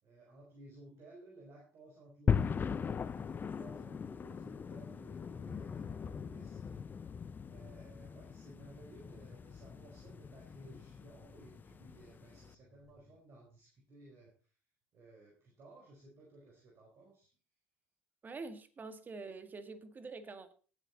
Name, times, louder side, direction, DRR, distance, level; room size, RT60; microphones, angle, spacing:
voice 1, 0.0-6.8 7.2-14.3 14.9-17.3, right 2 dB, 45° right, -2 dB, 5.0 m, -57 dB
sound 1, 2.3-12.5, left 6 dB, 30° left, 0.7 m, -39 dB
sound 2, 3.2-13.2, left 2 dB, ahead, 3.2 m, -64 dB
voice 2, 18.2-20.5, right 3 dB, 30° right, 10 dB, 2.0 m, -46 dB
18.5 x 8.3 x 4.0 m, 0.38 s
hypercardioid pair, 70°, 6 cm